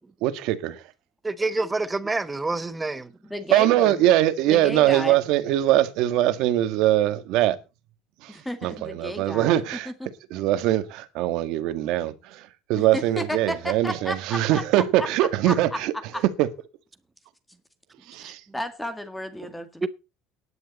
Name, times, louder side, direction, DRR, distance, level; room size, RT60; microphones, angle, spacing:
voice 1, 0.2-0.8 3.5-7.6 8.2-8.3 8.6-9.9 10.3-12.4 12.7-15.9 16.4-16.5 18.1-18.4, right 14 dB, 70° right, 1.8 m, -22 dB
voice 2, 1.2-3.1 19.8-19.9, right 3 dB, 15° right, 1.0 m, -27 dB
voice 3, 3.2-4.0 4.5-5.2 8.3-10.1 12.8-16.2 18.2-19.9, left 1 dB, 5° left, 2.0 m, -33 dB
17.0 x 11.0 x 4.2 m
cardioid pair, 145°, 0 cm